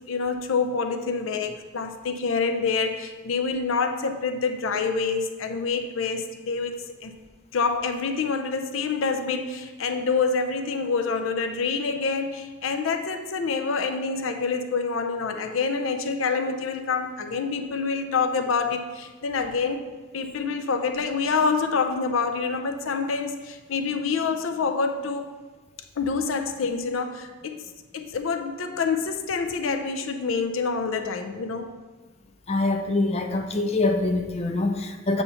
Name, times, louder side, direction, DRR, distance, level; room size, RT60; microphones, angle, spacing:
voice 1, 0.1-6.8 7.0-7.2 7.5-19.8 20.1-25.3 26.0-31.7, left 4 dB, 80° left, 6 dB, 0.5 m, -27 dB
voice 2, 32.5-35.2, left 2 dB, 30° left, 4 dB, 0.5 m, -24 dB
8.0 x 2.8 x 5.6 m, 1.3 s
head